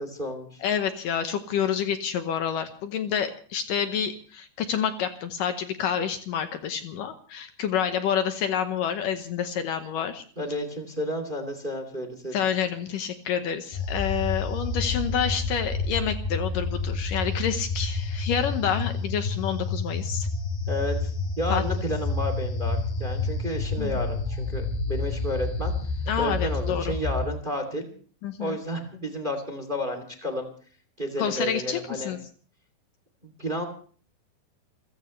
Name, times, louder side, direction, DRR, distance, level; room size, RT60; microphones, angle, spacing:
voice 1, 0.0-0.6 10.4-12.4 20.7-25.7 26.2-27.9 28.4-30.5 31.0-32.2 33.2-33.6, equal, 15° right, 6 dB, 2.3 m, -31 dB
voice 2, 0.6-10.2 12.3-20.3 21.5-21.6 23.8-23.9 26.1-26.9 28.2-28.6 31.2-32.2, left 8 dB, 70° left, 8 dB, 2.4 m, -28 dB
sound 1, 13.7-27.3, left 3 dB, 90° left, 6.1 m, -29 dB
28.5 x 15.0 x 3.2 m, 0.43 s
omnidirectional pair, 4.4 m